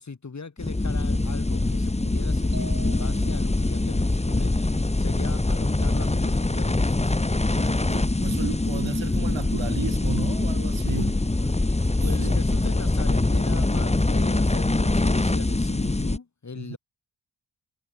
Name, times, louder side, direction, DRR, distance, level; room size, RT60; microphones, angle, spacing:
voice 1, 0.0-7.2 12.0-16.8, left 4 dB, 35° left, 2.6 m, -39 dB
sound 1, 0.6-16.2, left 2 dB, 15° left, 1.5 m, -23 dB
sound 2, 2.5-3.7, right 3 dB, 35° right, 6.7 m, -42 dB
voice 2, 7.6-11.7 12.2-12.5 16.6-16.8, right 8 dB, 75° right, 2.0 m, -35 dB
wide cardioid pair, 130°, 46 cm